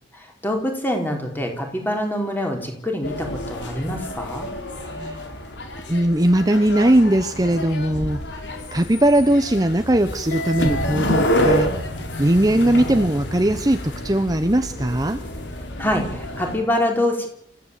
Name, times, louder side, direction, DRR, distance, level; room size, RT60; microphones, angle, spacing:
voice 1, 0.1-4.5 15.8-17.3, left 1 dB, 10° left, 2 dB, 4.7 m, -25 dB
sound 1, 3.0-16.6, equal, 80° left, 4.7 m, -28 dB
voice 2, 4.8-5.2 5.9-8.2 8.7-11.7 12.2-15.2, right 1 dB, 20° right, 8 dB, 1.1 m, -19 dB
28.0 x 15.5 x 8.5 m, 0.70 s
head